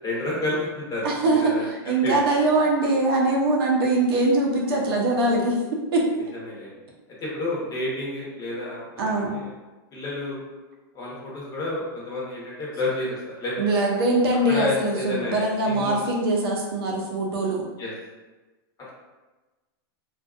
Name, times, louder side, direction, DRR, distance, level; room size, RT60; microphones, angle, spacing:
voice 1, 0.0-1.6 2.0-2.2 6.3-6.7 7.2-9.5 9.9-10.4 10.9-13.8 14.5-16.0 17.8-17.9, left 2 dB, 30° left, -5 dB, 1.0 m, -30 dB
voice 2, 1.0-5.6 5.9-6.1 9.0-9.3 13.6-17.7, right 2 dB, 70° right, -1 dB, 0.7 m, -22 dB
2.6 x 2.4 x 2.4 m, 1.2 s
hypercardioid pair, 120°, 13 cm